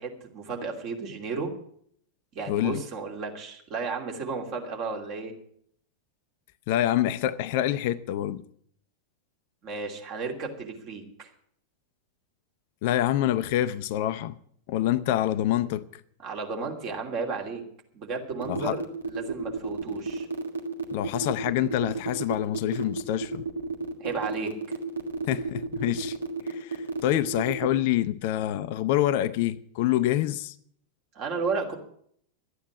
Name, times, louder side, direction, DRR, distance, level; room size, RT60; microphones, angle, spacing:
voice 1, 0.0-1.5 2.3-5.3 9.6-11.3 16.2-17.6 17.9-20.3 24.0-24.7 31.1-31.7, right 4 dB, 40° right, 2.8 m, -33 dB
voice 2, 2.5-2.8 6.7-8.4 12.8-14.4 14.7-16.0 18.5-18.8 20.9-23.4 25.3-26.2 26.4-30.5, left 13 dB, 50° left, 0.5 m, -26 dB
sound 1, 18.4-27.7, right 4 dB, 75° right, 1.6 m, -32 dB
12.5 x 9.3 x 8.2 m
figure-of-eight pair, 90°, 0 cm